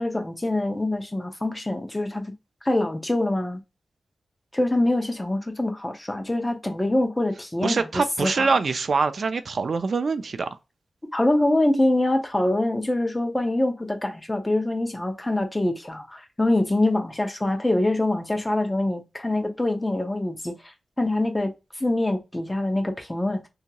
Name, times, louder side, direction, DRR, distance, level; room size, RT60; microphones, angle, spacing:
voice 1, 0.0-2.3 2.6-3.6 4.5-8.5 11.1-21.5 21.8-23.5, left 1 dB, 15° left, 0.5 m, -24 dB
voice 2, 7.6-10.5, right 4 dB, 60° right, 0.3 m, -24 dB
2.8 x 2.7 x 2.2 m
wide cardioid pair, 135°, 0 cm